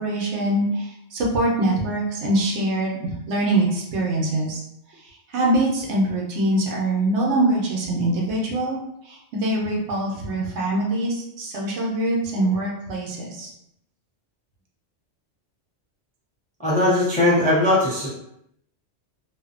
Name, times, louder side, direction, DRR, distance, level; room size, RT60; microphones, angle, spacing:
voice 1, 0.0-4.6 4.9-13.5, right 1 dB, 70° right, -3 dB, 0.9 m, -24 dB
voice 2, 16.6-18.1, left 1 dB, 10° left, -9 dB, 0.5 m, -19 dB
2.6 x 2.0 x 2.4 m, 0.80 s
omnidirectional pair, 1.2 m